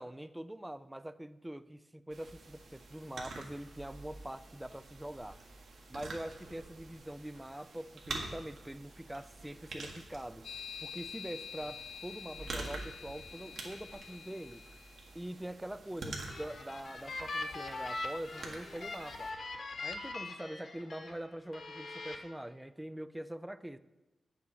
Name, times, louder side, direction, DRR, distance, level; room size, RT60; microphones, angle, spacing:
voice 1, 0.0-5.4 5.9-10.5 10.8-14.6 15.2-19.3 19.8-23.8, right 1 dB, 5° right, 0.4 m, -44 dB
sound 1, 2.1-19.3, right 3 dB, 70° right, 1.8 m, -47 dB
sound 2, 10.4-15.1, left 7 dB, 75° left, 0.3 m, -47 dB
sound 3, 16.1-21.1 21.5-22.2, left 3 dB, 55° left, 1.5 m, -41 dB
8.6 x 7.1 x 6.7 m
wide cardioid pair, 110°, 0 cm